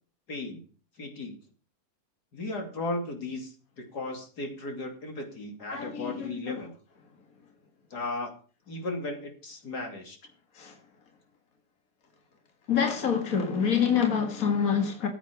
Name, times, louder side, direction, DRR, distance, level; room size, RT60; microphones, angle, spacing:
voice 1, 0.3-0.6 1.0-1.4 2.3-6.7 7.9-8.3 8.7-10.2, left 2 dB, 85° left, 3.4 m, -36 dB
voice 2, 5.7-6.6 10.6-10.8 12.7-15.1, left 7 dB, 60° left, 2.2 m, -26 dB
14.5 x 8.4 x 5.2 m
omnidirectional pair, 1.7 m